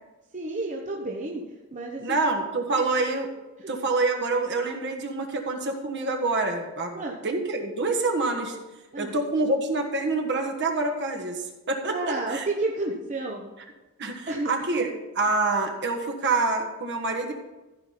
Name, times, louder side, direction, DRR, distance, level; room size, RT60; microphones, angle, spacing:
voice 1, 0.3-1.4 1.7-2.2 2.7-2.8 3.6-3.7 6.9-7.1 8.9-9.1 11.9-13.5 14.3-14.5, right 2 dB, 35° right, -1 dB, 0.9 m, -31 dB
voice 2, 2.0-3.3 3.7-8.6 9.0-12.5 14.0-17.3, right 3 dB, 50° right, 3 dB, 1.5 m, -27 dB
14.5 x 5.4 x 5.8 m, 1.1 s
head